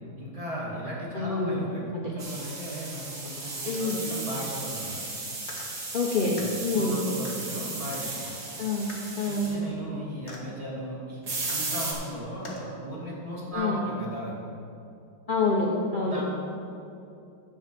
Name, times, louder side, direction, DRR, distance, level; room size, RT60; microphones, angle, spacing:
voice 1, 0.2-4.9 6.2-8.3 9.2-11.2 11.5-14.3 16.0-16.2, equal, 15° right, -6 dB, 2.5 m, -36 dB
voice 2, 1.1-2.1 3.7-4.0 5.9-7.0 8.6-9.5 13.5-13.8 15.3-16.2, left 3 dB, 55° left, -3 dB, 0.5 m, -27 dB
sound 1, 2.2-9.6 11.2-11.9, right 3 dB, 55° right, 2.3 m, -35 dB
sound 2, 3.6-4.2 5.4-5.7 6.4-6.5 7.2-7.4 7.9-8.1 8.9-9.0 10.3-10.4 11.4-12.0 12.4-12.6 13.5-13.6, left 3 dB, 40° left, 1.4 m, -44 dB
12.0 x 4.8 x 7.5 m, 2.7 s
omnidirectional pair, 2.2 m